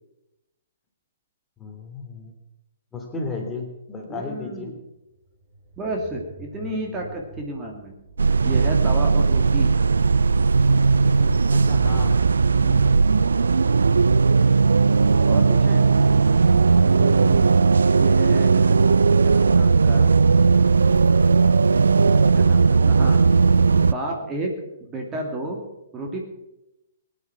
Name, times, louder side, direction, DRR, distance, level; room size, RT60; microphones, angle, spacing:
voice 1, 1.6-2.3 2.9-4.7 11.2-12.2 17.0-17.7, left 3 dB, 10° left, 2 dB, 3.1 m, -33 dB
voice 2, 4.1-4.7 5.8-7.9 8.4-9.7 15.3-15.9 17.9-20.1 22.3-23.2 23.7-24.6 24.9-25.6 25.9-26.2, right 2 dB, 15° right, 1 dB, 2.6 m, -31 dB
sound 1, 4.9-13.3, right 2 dB, 40° right, 5.0 m, -46 dB
sound 2, 8.2-23.9, right 4 dB, 70° right, 0.5 m, -17 dB
21.5 x 10.0 x 6.1 m, 0.91 s
figure-of-eight pair, 120°, 0 cm